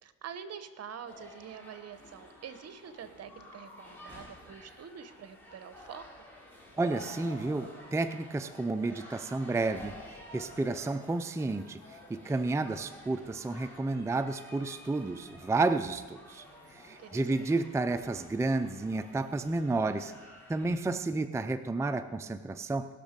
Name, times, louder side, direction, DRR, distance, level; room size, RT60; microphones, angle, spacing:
voice 1, 0.0-6.0 16.9-17.6, right 8 dB, 55° right, 11 dB, 1.0 m, -46 dB
sound 1, 1.1-20.7, left 1 dB, 5° left, 3.3 m, -51 dB
voice 2, 6.8-11.8 12.1-16.4 16.7-20.1 20.5-22.9, right 3 dB, 10° right, 9 dB, 0.5 m, -31 dB
19.5 x 6.5 x 5.2 m, 1.4 s
cardioid pair, 90°, 30 cm